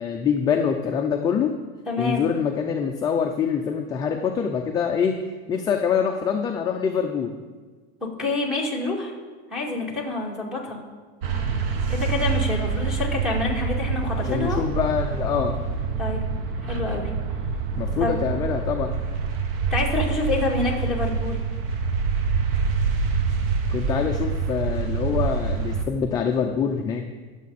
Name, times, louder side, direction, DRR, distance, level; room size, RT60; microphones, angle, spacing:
voice 1, 0.0-1.5 2.0-5.2 5.5-7.3 14.2-15.6 17.8-19.0 23.7-27.0, left 7 dB, 15° left, 2 dB, 0.4 m, -25 dB
voice 2, 1.9-2.2 8.0-9.1 9.5-10.8 11.9-14.6 16.0-16.2 16.6-17.1 18.0-18.2 19.7-21.4, left 3 dB, ahead, -6 dB, 2.2 m, -27 dB
sound 1, 11.2-25.9, right 5 dB, 70° right, 1.3 m, -26 dB
21.0 x 7.4 x 4.2 m, 1.4 s
supercardioid pair, 165°, 30 cm